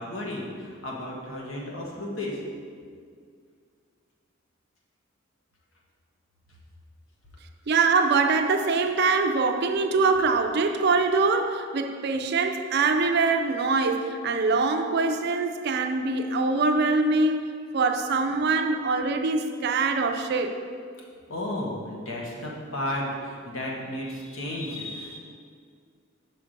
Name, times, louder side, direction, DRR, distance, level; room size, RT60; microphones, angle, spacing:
voice 1, 0.0-2.4 21.3-25.2, left 1 dB, 75° left, -2 dB, 1.3 m, -33 dB
voice 2, 7.7-20.6, right 4 dB, 50° right, 6 dB, 0.4 m, -23 dB
6.0 x 4.6 x 5.1 m, 2.2 s
head